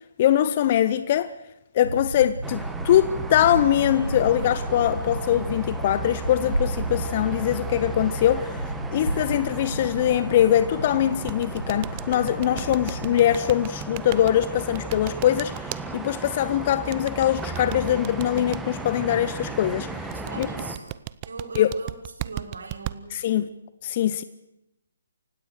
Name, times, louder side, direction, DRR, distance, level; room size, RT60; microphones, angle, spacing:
voice 1, 0.2-1.3 1.7-8.6 8.9-20.5 21.6-21.7 23.1-23.4 23.8-24.2, left 11 dB, 40° left, 0.7 m, -22 dB
sound 1, 1.8-13.4, right 1 dB, 90° right, 1.4 m, -33 dB
sound 2, 2.4-20.8, right 3 dB, 5° right, 1.6 m, -36 dB
sound 3, 11.3-15.8 16.9-18.6 20.1-22.9, right 18 dB, 30° right, 0.7 m, -34 dB
voice 2, 20.1-20.9 21.2-23.3, right 3 dB, 70° right, 4.6 m, -39 dB
28.5 x 16.5 x 6.6 m
figure-of-eight pair, 140°, 0 cm